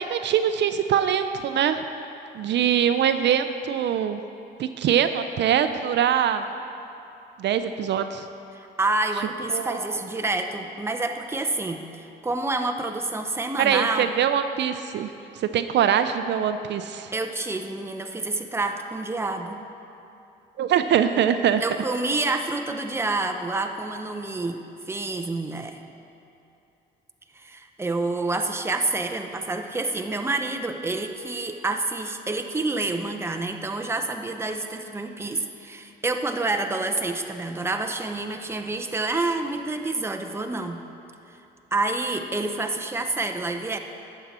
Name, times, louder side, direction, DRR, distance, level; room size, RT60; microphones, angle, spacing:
voice 1, 0.0-1.8 2.3-4.2 4.6-6.4 7.4-8.3 9.5-9.8 13.6-15.1 15.3-17.1 20.6-21.6, right 9 dB, 65° right, 9 dB, 0.4 m, -23 dB
voice 2, 8.5-14.1 17.1-19.6 21.6-25.8 27.3-40.8 41.3-41.4 41.7-43.8, right 2 dB, 10° right, 5 dB, 0.6 m, -28 dB
11.0 x 7.3 x 4.2 m, 2.8 s
cardioid pair, 90°, 20 cm